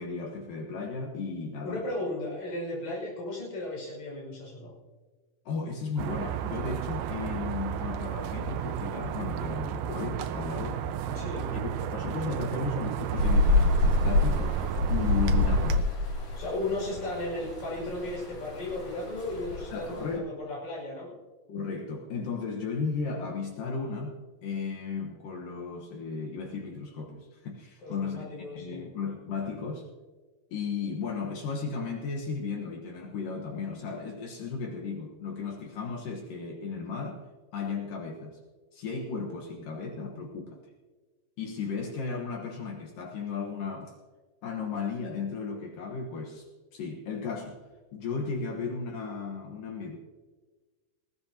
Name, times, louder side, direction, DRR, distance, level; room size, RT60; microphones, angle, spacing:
voice 1, 0.0-1.8 5.5-10.9 11.5-14.6 14.9-15.9 19.7-20.3 21.5-29.9 30.5-37.2 37.5-38.4 38.7-40.6 41.4-44.0 44.4-47.6 47.9-50.0, left 5 dB, 65° left, 0 dB, 2.8 m, -35 dB
voice 2, 1.6-4.7 11.1-11.5 16.4-21.1 27.8-28.8, left 2 dB, 40° left, -4 dB, 6.6 m, -35 dB
sound 1, 6.0-15.8, right 9 dB, 85° right, 2.5 m, -33 dB
Rain, 13.2-20.2, left 2 dB, 85° left, 6.0 m, -27 dB
20.0 x 16.5 x 2.9 m, 1.3 s
omnidirectional pair, 4.3 m